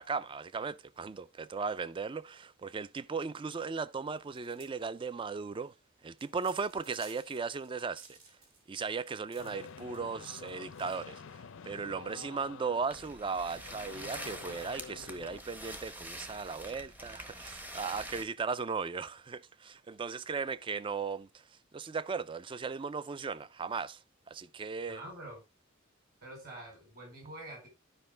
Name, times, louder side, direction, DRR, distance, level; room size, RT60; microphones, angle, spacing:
voice 1, 0.0-5.7 6.0-8.2 8.7-11.2 11.6-21.3 21.7-24.0 24.3-25.0, right 5 dB, 25° right, 0.3 m, -37 dB
sound 1, 4.2-11.5, right 3 dB, 75° right, 2.6 m, -59 dB
sound 2, 9.4-15.4, left 6 dB, 65° left, 0.5 m, -49 dB
sound 3, 12.9-18.2, equal, 10° right, 0.7 m, -45 dB
voice 2, 24.8-25.4 26.2-27.7, right 1 dB, 45° right, 4.7 m, -46 dB
11.5 x 5.1 x 3.3 m
head